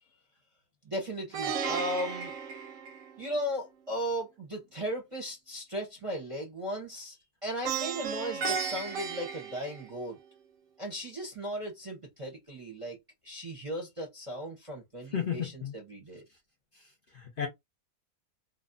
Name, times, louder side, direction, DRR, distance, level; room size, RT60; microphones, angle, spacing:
voice 1, 0.8-2.3 3.2-7.2 7.4-10.2 10.8-13.0 13.2-16.3, equal, 35° right, 0.6 m, -36 dB
Plucked string instrument, 1.3-3.5 7.6-10.2, right 6 dB, 85° right, 1.0 m, -34 dB
voice 2, 15.1-15.7 17.1-17.5, left 8 dB, 55° left, 0.6 m, -33 dB
2.6 x 2.1 x 2.5 m
omnidirectional pair, 1.4 m